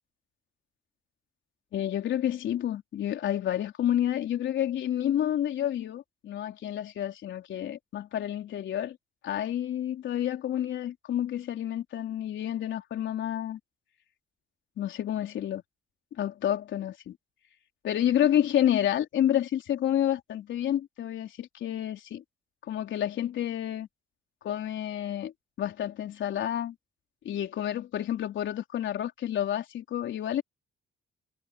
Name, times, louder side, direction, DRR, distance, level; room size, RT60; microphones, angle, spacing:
voice 1, 1.7-9.0 9.2-13.6 14.8-15.6 16.2-17.2 17.8-22.2 22.6-23.9 24.4-25.3 25.6-26.7 27.2-30.4, left 11 dB, 70° left, 3.8 m, -29 dB
cardioid pair, 90°, 20 cm